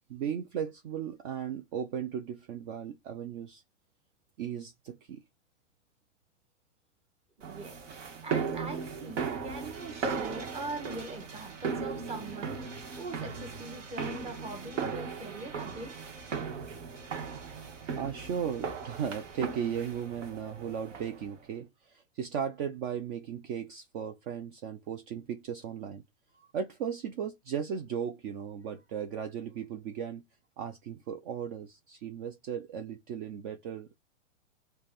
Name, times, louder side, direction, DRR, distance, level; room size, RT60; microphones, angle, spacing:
voice 1, 0.1-3.6 4.4-5.2 17.9-26.0 26.5-30.2 30.6-34.0, right 8 dB, 40° right, 0.5 m, -36 dB
voice 2, 7.4-7.8 8.2-16.0 26.4-26.5, right 2 dB, 15° right, 0.8 m, -42 dB
sound 1, 7.4-21.3, right 5 dB, 70° right, 1.2 m, -37 dB
3.3 x 2.2 x 4.0 m
hypercardioid pair, 110°, 38 cm